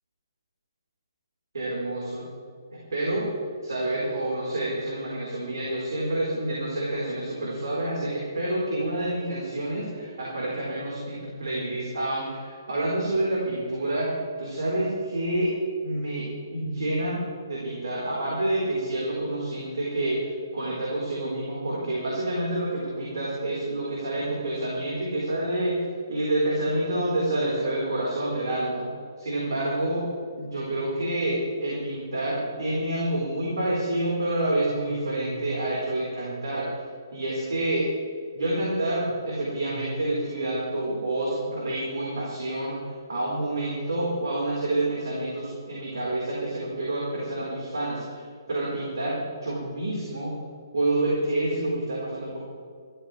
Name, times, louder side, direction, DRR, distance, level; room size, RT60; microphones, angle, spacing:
voice 1, 1.5-2.3 2.7-3.3 3.6-15.5 15.8-25.8 26.1-28.9 29.2-30.1 30.4-36.7 37.1-37.8 38.4-48.2 48.5-50.3 50.7-52.4, right 1 dB, 80° right, -5 dB, 4.3 m, -28 dB
19.0 x 14.0 x 3.4 m, 2.2 s
hypercardioid pair, 150°, 2 cm